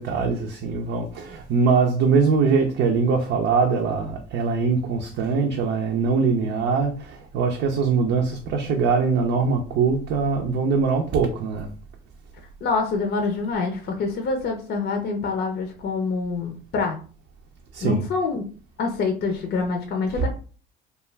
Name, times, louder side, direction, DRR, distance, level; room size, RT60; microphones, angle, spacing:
voice 1, 0.0-11.7 17.7-18.0 20.2-20.3, right 5 dB, 60° right, 0.5 m, -22 dB
voice 2, 12.6-17.0 17.8-18.5 18.8-20.3, left 4 dB, 55° left, 0.6 m, -26 dB
2.4 x 2.3 x 3.1 m
supercardioid pair, 90°, 21 cm